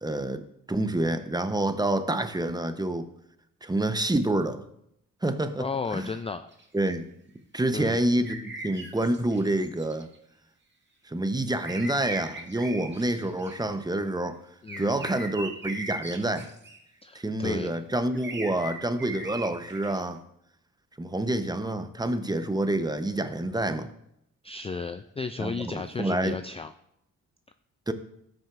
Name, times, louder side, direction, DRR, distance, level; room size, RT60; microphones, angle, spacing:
voice 1, 0.0-3.1 3.6-4.6 5.2-6.1 6.7-7.1 7.5-10.1 11.1-14.4 14.8-16.5 17.1-20.2 21.0-23.9 25.4-26.4 27.9-28.0, right 1 dB, 10° right, 9 dB, 0.8 m, -28 dB
voice 2, 5.6-6.5 7.7-8.0 14.6-15.1 17.0-17.8 24.4-26.7, left 4 dB, 20° left, 10 dB, 0.4 m, -34 dB
sound 1, 6.5-6.9 8.2-10.1 11.6-13.6 14.7-16.8 18.1-20.0, right 2 dB, 35° right, 2.0 m, -39 dB
13.0 x 6.2 x 2.5 m, 0.77 s
supercardioid pair, 50°, 33 cm